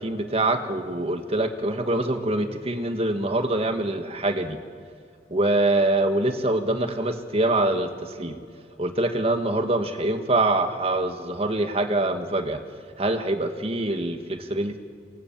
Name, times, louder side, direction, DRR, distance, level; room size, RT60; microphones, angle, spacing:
voice 1, 0.0-4.6 5.3-8.4 8.8-12.6 13.0-14.8, right 2 dB, 35° right, 7 dB, 1.9 m, -24 dB
28.5 x 24.5 x 7.5 m, 2.4 s
head